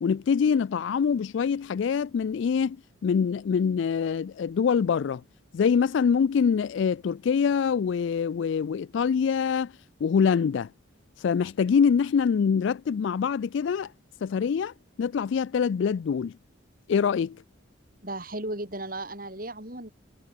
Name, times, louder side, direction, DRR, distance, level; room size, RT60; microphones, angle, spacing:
voice 1, 0.0-2.8 3.0-5.2 5.5-9.7 10.0-10.7 11.2-13.9 14.2-16.4 16.9-17.4, left 6 dB, 65° left, 0.3 m, -24 dB
voice 2, 18.0-19.9, right 1 dB, 45° right, 6.4 m, -35 dB
head